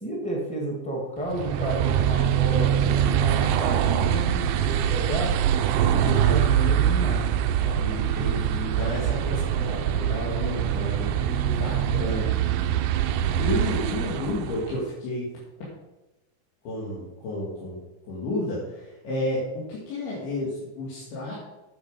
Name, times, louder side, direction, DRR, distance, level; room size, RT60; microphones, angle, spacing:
voice 1, 0.0-5.3 5.7-7.2 7.6-7.8 11.1-12.0, right 1 dB, 5° left, -2 dB, 1.3 m, -31 dB
sound 1, 1.3-14.8, right 10 dB, 90° right, 1.8 m, -24 dB
voice 2, 5.7-6.4 7.8-12.5 13.4-15.3 16.6-17.8 18.1-21.4, left 1 dB, 85° left, -7 dB, 4.3 m, -32 dB
9.6 x 8.1 x 5.1 m, 1.0 s
omnidirectional pair, 4.4 m